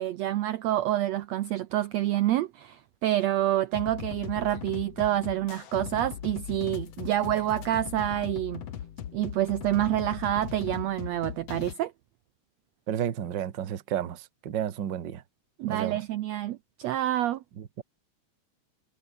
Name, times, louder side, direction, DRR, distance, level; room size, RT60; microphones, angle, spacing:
voice 1, 0.0-8.6 9.1-11.9 15.6-17.4, right 13 dB, 80° right, 1.5 m, -28 dB
sound 1, 3.7-11.7, left 10 dB, 55° left, 2.2 m, -39 dB
voice 2, 12.9-15.2 15.7-16.0 17.6-17.8, right 10 dB, 50° right, 1.3 m, -32 dB
omnidirectional pair, 4.1 m